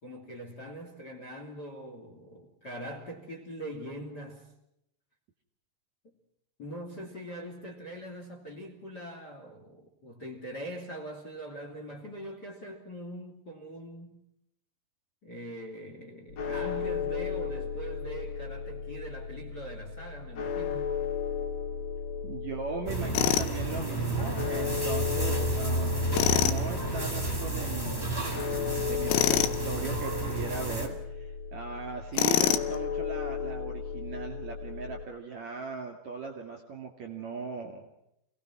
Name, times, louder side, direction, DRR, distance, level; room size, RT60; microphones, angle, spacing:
voice 1, 0.0-4.5 6.6-14.2 15.2-21.0, right 1 dB, 25° left, 4 dB, 2.8 m, -42 dB
sound 1, 16.3-35.0, left 6 dB, 60° left, 1.8 m, -35 dB
voice 2, 22.2-37.9, right 5 dB, 45° right, 3 dB, 2.9 m, -39 dB
sound 2, 22.9-30.9, right 2 dB, 5° left, 2.0 m, -31 dB
Tools, 23.2-23.5 26.1-26.6 29.1-29.6 32.2-32.8, left 12 dB, 90° left, 3.6 m, -25 dB
29.0 x 18.5 x 6.1 m, 0.80 s
omnidirectional pair, 5.5 m